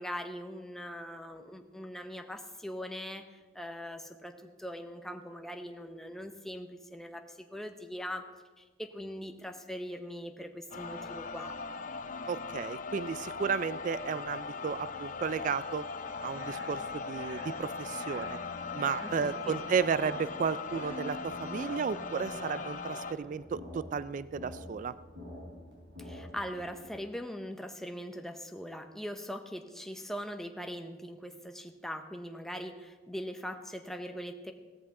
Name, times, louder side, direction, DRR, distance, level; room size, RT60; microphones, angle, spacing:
voice 1, 0.0-8.3 8.6-11.6 19.0-19.8 26.0-34.5, equal, ahead, 5 dB, 0.8 m, -41 dB
sound 1, 10.7-23.1, left 4 dB, 45° left, 0.6 m, -39 dB
voice 2, 12.3-15.9 16.2-18.4 18.7-24.9, right 6 dB, 45° right, 16 dB, 0.3 m, -33 dB
sound 2, 16.0-26.9, equal, 70° right, 4.8 m, -48 dB
16.0 x 13.5 x 3.8 m, 1.3 s
head